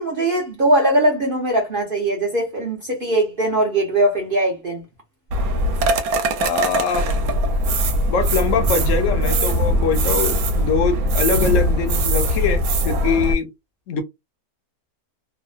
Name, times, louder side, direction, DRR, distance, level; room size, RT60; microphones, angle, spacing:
voice 1, 0.0-4.8, right 1 dB, 50° right, 0.7 m, -20 dB
sound 1, 5.3-13.3, right 1 dB, 75° right, 1.0 m, -20 dB
voice 2, 6.4-7.1 8.1-13.5 13.9-14.0, left 5 dB, 65° left, 0.9 m, -23 dB
2.8 x 2.0 x 2.3 m
omnidirectional pair, 1.6 m